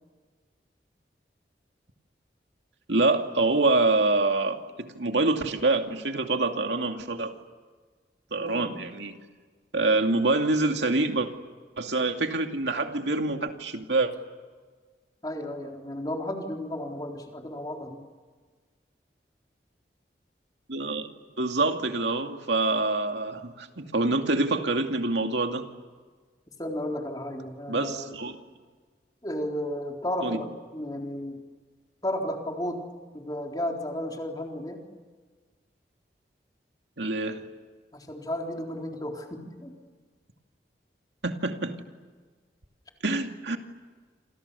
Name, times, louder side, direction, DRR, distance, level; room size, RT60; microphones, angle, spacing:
voice 1, 2.9-7.3 8.3-9.2 9.7-11.3 11.8-14.1 20.7-21.1 21.4-25.7 27.7-28.4 30.2-30.4 37.0-37.4 41.2-41.7 43.0-43.6, right 2 dB, 85° right, 4 dB, 2.5 m, -26 dB
voice 2, 15.2-18.0 26.6-28.2 29.2-31.4 32.0-32.9 33.1-34.8 37.9-39.7, left 1 dB, 20° left, 1 dB, 3.9 m, -33 dB
28.5 x 28.0 x 7.0 m, 1.4 s
head